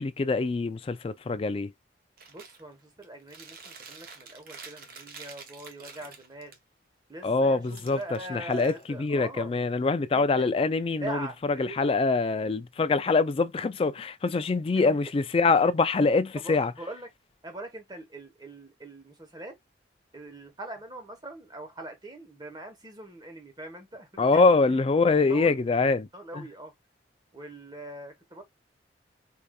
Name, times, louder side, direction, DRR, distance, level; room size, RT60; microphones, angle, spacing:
voice 1, 0.0-1.7 7.2-16.7 24.2-26.1 26.3-26.4, left 3 dB, 30° left, 0.3 m, -24 dB
Chewing mastication, 2.2-2.6 3.0-6.6 7.6-9.2, right 5 dB, 50° right, 0.8 m, -48 dB
voice 2, 2.3-6.6 7.1-9.5 10.1-10.6 11.0-11.4 11.7-11.8 16.4-17.1 17.4-19.6 20.1-24.6 25.3-25.6 26.1-26.7 27.3-28.4, right 1 dB, 25° right, 1.1 m, -42 dB
4.8 x 2.6 x 2.3 m
head